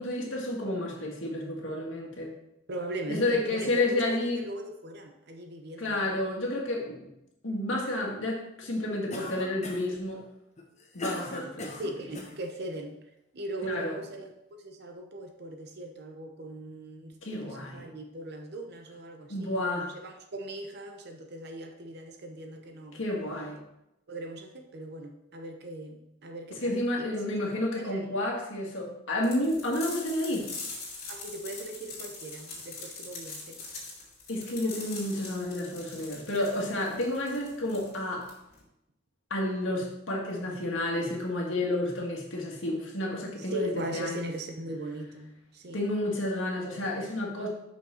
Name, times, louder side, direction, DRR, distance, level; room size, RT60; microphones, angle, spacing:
voice 1, 0.0-2.3 3.1-4.4 5.8-7.1 7.4-10.2 10.9-11.8 13.6-13.9 17.2-17.8 19.3-20.0 22.9-23.7 26.5-30.6 34.3-38.3 39.3-44.3 45.7-47.5, left 1 dB, 80° left, -1 dB, 1.7 m, -30 dB
voice 2, 2.7-6.1 11.8-13.0 13.3-23.0 24.1-27.3 27.7-28.0 31.1-33.6 43.4-45.8, right 1 dB, 55° right, 4 dB, 0.7 m, -39 dB
Cough, 9.1-10.0 10.6-12.4, left 2 dB, 35° left, 1.1 m, -38 dB
sound 1, 29.2-38.6, left 3 dB, 55° left, 2.4 m, -42 dB
6.0 x 5.5 x 4.3 m, 0.85 s
head